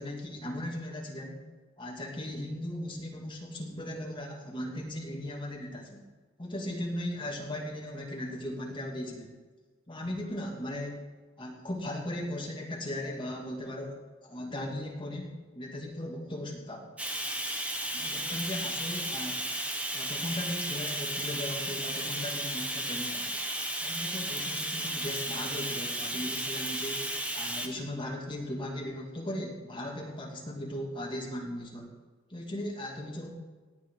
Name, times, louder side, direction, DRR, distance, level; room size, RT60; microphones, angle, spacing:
voice 1, 0.0-1.4 1.8-6.0 6.4-9.3 9.9-11.0 11.4-16.9 17.9-19.4 19.9-23.3 23.8-27.0 27.3-31.9 32.3-33.3, left 1 dB, 25° left, -1 dB, 2.6 m, -37 dB
Bathtub (filling or washing), 17.0-27.7, right 1 dB, 5° right, 1.1 m, -34 dB
18.5 x 8.3 x 4.8 m, 1.4 s
head